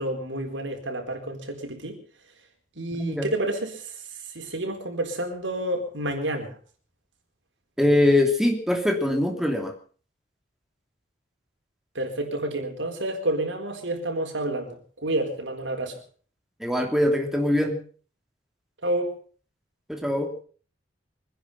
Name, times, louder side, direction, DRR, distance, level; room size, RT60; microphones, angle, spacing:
voice 1, 0.0-2.0 2.8-3.9 4.3-6.5 11.9-16.0 18.8-19.2, right 1 dB, 80° right, 3 dB, 4.3 m, -29 dB
voice 2, 2.9-3.3 7.8-9.7 16.6-17.8 19.9-20.3, left 1 dB, ahead, 3 dB, 3.0 m, -22 dB
24.5 x 10.5 x 5.7 m, 0.43 s
head